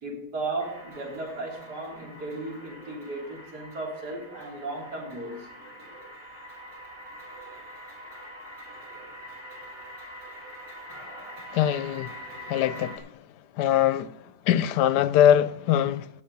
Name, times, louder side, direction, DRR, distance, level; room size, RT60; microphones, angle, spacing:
voice 1, 0.0-5.6, right 2 dB, 70° right, 3.9 m, -35 dB
sound 1, 0.6-13.0, equal, 40° right, 3.0 m, -44 dB
voice 2, 11.5-12.1 12.5-13.1 13.6-14.2 14.5-16.1, left 10 dB, 75° left, 1.1 m, -22 dB
16.5 x 5.8 x 5.3 m
omnidirectional pair, 1.8 m